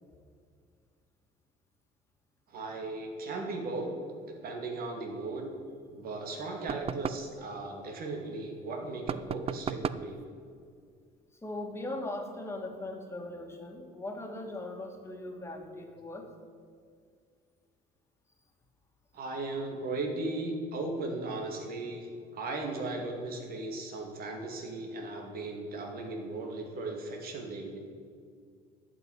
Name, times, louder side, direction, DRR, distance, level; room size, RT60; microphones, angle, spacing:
voice 1, 2.5-3.9 4.3-5.5 5.9-10.2 19.1-27.8, right 2 dB, 60° right, 2 dB, 2.3 m, -37 dB
sound 1, 6.7-7.3 9.1-10.1, right 7 dB, 35° right, 0.4 m, -35 dB
voice 2, 11.4-16.3, left 2 dB, 15° left, 2 dB, 2.1 m, -39 dB
12.0 x 6.2 x 9.1 m, 2.1 s
cardioid pair, 110°, 17 cm